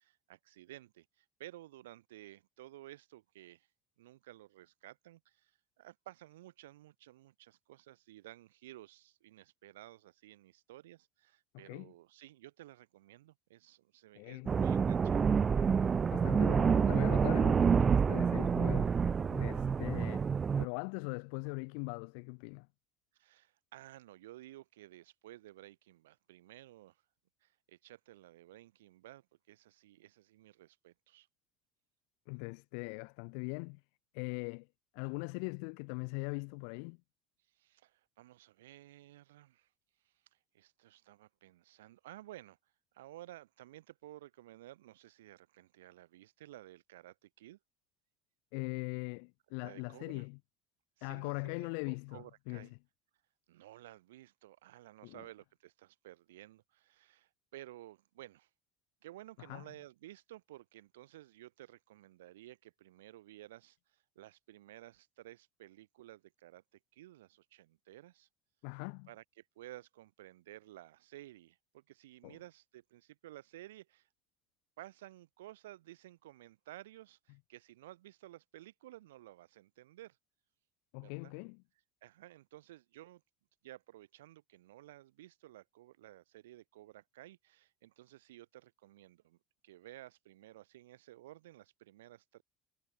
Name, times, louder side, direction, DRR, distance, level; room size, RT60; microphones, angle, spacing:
voice 1, 0.0-3.7 4.0-15.5 23.1-27.0 27.4-31.3 37.5-39.7 40.0-42.6 42.9-47.6 49.6-50.2 51.0-52.7 53.5-58.5 59.0-66.6 66.9-68.3 69.1-74.1 74.8-80.2 81.0-81.3 82.0-83.2 83.6-89.4 89.6-92.4, right 15 dB, 65° right, 8.0 m, -54 dB
voice 2, 14.2-14.5 16.1-18.9 19.3-20.3 20.6-22.7 32.3-33.8 34.1-34.7 34.9-37.0 48.5-50.4 51.0-52.7 55.0-55.2 59.4-59.6 68.6-69.1 72.2-72.4 80.9-81.6, left 40 dB or more, 60° left, 0.6 m, -41 dB
sound 1, 14.5-20.6, right 6 dB, 30° right, 0.4 m, -28 dB
figure-of-eight pair, 65°, 0 cm